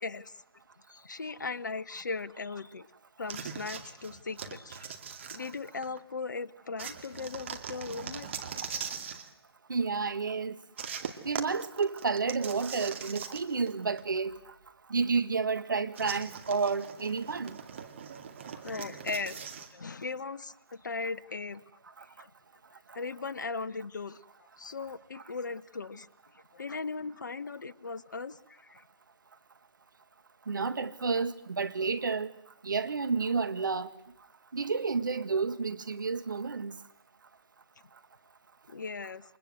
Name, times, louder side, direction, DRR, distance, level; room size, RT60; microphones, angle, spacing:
voice 1, 0.0-0.3 0.9-2.9 3.2-4.8 5.3-8.3 18.6-21.6 22.2-22.3 22.9-24.2 24.6-26.1 26.5-28.8 38.7-39.2, left 4 dB, 45° left, 1.2 m, -38 dB
sound 1, 3.3-6.0 6.8-9.3 10.8-13.7 14.0-14.1 15.9-19.7, right 7 dB, 30° right, 2.3 m, -41 dB
voice 2, 9.7-10.6 11.2-14.5 14.9-17.6 22.0-22.1 30.5-32.3 32.6-33.9 34.5-36.8, right 4 dB, 50° right, 1.9 m, -30 dB
29.0 x 25.5 x 8.0 m
figure-of-eight pair, 155°, 14 cm